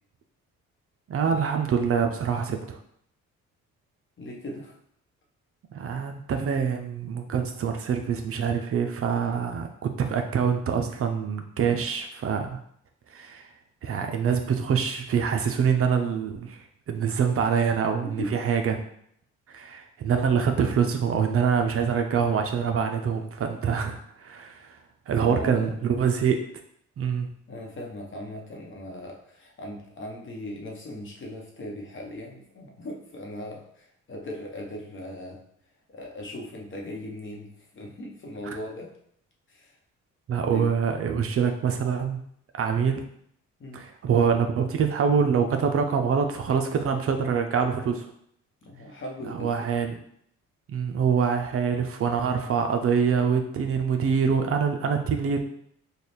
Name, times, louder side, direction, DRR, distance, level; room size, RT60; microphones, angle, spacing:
voice 1, 1.1-2.8 5.7-12.6 13.1-13.4 13.8-18.8 19.5-24.8 25.1-26.4 27.0-27.3 40.3-42.2 42.6-43.0 43.7-48.1 49.3-49.9 50.7-55.4, right 6 dB, 50° right, 5 dB, 0.5 m, -25 dB
voice 2, 4.2-4.8 18.0-18.4 25.2-25.9 27.5-35.4 35.9-38.9 39.5-39.8 40.5-40.7 43.6-43.9 48.6-49.7, left 1 dB, 40° left, 0 dB, 1.0 m, -38 dB
3.3 x 2.3 x 4.2 m, 0.69 s
cardioid pair, 90°, 30 cm